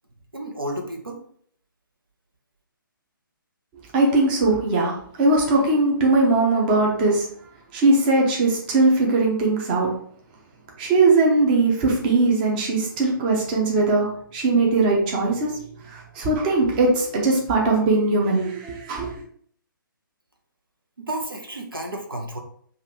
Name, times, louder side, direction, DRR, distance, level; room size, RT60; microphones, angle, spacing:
voice 1, 0.3-1.2 21.0-22.4, right 1 dB, 80° right, 2 dB, 0.9 m, -31 dB
voice 2, 3.9-7.3 7.7-9.9 10.8-15.6 15.8-19.1, right 2 dB, 25° right, -1 dB, 0.8 m, -20 dB
5.3 x 2.6 x 3.0 m, 0.62 s
figure-of-eight pair, 135°, 12 cm